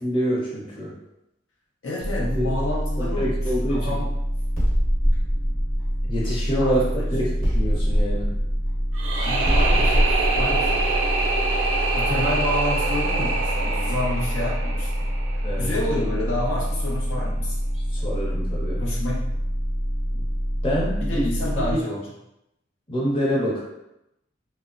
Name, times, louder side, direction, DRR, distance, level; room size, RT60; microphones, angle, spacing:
voice 1, 0.0-0.9 2.2-2.5 3.0-3.9 6.1-8.3 15.4-15.7 17.9-18.9 20.1-20.2 20.6-21.2 21.7-21.8 22.9-23.6, equal, 30° left, -7 dB, 0.7 m, -26 dB
voice 2, 1.8-4.0 6.6-7.1 9.2-10.1 10.3-10.8 11.9-15.1 15.6-17.6 18.8-19.2 21.1-22.0, left 1 dB, 90° left, -4 dB, 0.6 m, -29 dB
sound 1, 2.0-21.7, equal, 10° right, 0.3 m, -26 dB
sound 2, 4.5-6.9 7.4-12.1, equal, 50° left, 1.0 m, -24 dB
sound 3, 8.9-15.9, right 3 dB, 85° right, 0.4 m, -26 dB
2.8 x 2.1 x 2.4 m, 0.87 s
head